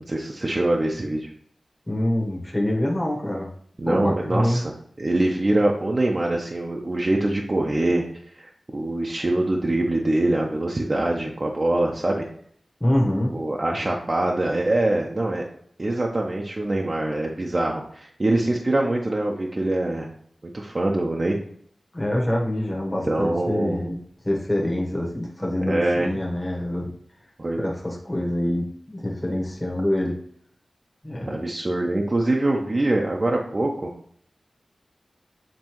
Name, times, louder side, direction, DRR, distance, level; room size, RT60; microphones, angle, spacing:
voice 1, 0.1-1.3 3.8-8.0 8.3-12.3 13.3-15.4 15.8-20.1 20.5-21.4 23.1-23.8 25.6-26.1 27.4-27.6 31.2-33.9, right 2 dB, 35° right, -1 dB, 0.7 m, -24 dB
voice 2, 1.9-3.5 3.9-4.6 12.8-13.3 21.9-26.9 27.6-30.2 31.0-31.4, left 1 dB, 15° left, -2 dB, 1.2 m, -25 dB
7.6 x 4.1 x 3.0 m, 0.62 s
wide cardioid pair, 100°, 0 cm